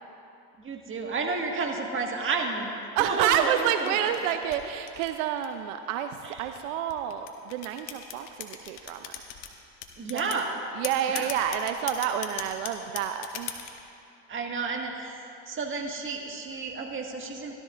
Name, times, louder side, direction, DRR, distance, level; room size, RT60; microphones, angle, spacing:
voice 1, 0.6-2.7 3.0-3.9 10.0-10.6 11.1-11.3 14.3-15.2 15.5-17.5, right 4 dB, 35° right, 1 dB, 1.7 m, -31 dB
voice 2, 3.0-9.1 10.1-10.2 10.7-13.5, right 9 dB, 85° right, 8 dB, 0.6 m, -29 dB
sound 1, 3.2-5.7 6.4-9.5 9.8-10.4 10.8-13.8, left 11 dB, 80° left, 1.1 m, -38 dB
16.5 x 12.5 x 2.5 m, 2.6 s
supercardioid pair, 95°, 37 cm